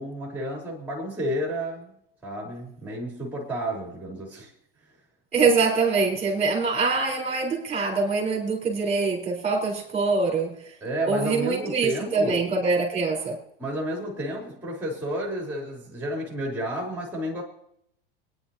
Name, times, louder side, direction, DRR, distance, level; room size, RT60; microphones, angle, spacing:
voice 1, 0.0-1.9 2.2-4.5 10.8-12.4 13.6-17.4, equal, 5° right, -2 dB, 3.8 m, -31 dB
voice 2, 5.3-10.7 11.1-13.4, right 4 dB, 20° right, -1 dB, 4.2 m, -24 dB
25.0 x 10.0 x 2.9 m, 0.71 s
hypercardioid pair, 105°, 29 cm